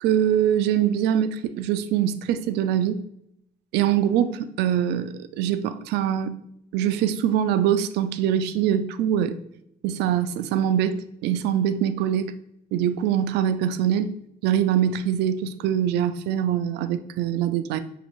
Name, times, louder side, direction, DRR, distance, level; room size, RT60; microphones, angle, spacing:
voice 1, 0.0-3.0 3.7-6.3 6.7-9.3 9.8-12.3 12.7-14.1 14.4-17.8, right 10 dB, 85° right, 11 dB, 0.4 m, -23 dB
6.5 x 2.5 x 3.0 m, 0.77 s
cardioid pair, 110°, 17 cm